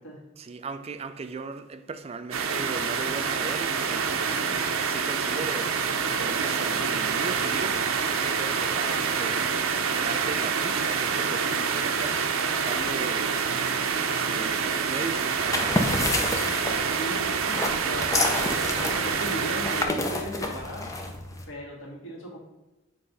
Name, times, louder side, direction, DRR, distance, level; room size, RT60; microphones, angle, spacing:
voice 1, 0.4-13.5 13.8-16.3, right 4 dB, 30° right, 0.3 m, -38 dB
sound 1, 2.3-19.8, right 6 dB, 85° right, 0.6 m, -27 dB
sound 2, 15.4-21.4, left 2 dB, 15° left, 0.7 m, -29 dB
voice 2, 16.9-18.1 18.7-20.9 21.5-22.4, equal, 65° left, 2.2 m, -37 dB
7.7 x 3.3 x 5.4 m
head